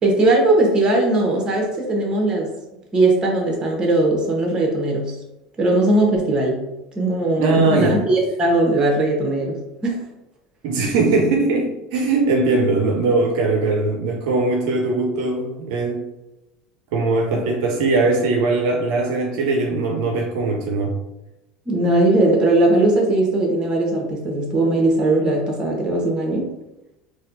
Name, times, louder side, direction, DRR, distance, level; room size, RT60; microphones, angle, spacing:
voice 1, 0.0-2.5 2.9-5.2 5.6-6.6 6.9-10.0 17.3-17.4 21.7-26.5, right 2 dB, 30° right, 0 dB, 1.1 m, -19 dB
voice 2, 7.4-8.0 10.6-16.1 16.9-20.9, right 3 dB, 70° right, 1 dB, 0.5 m, -20 dB
4.1 x 2.3 x 2.6 m, 0.94 s
hypercardioid pair, 90°, 3 cm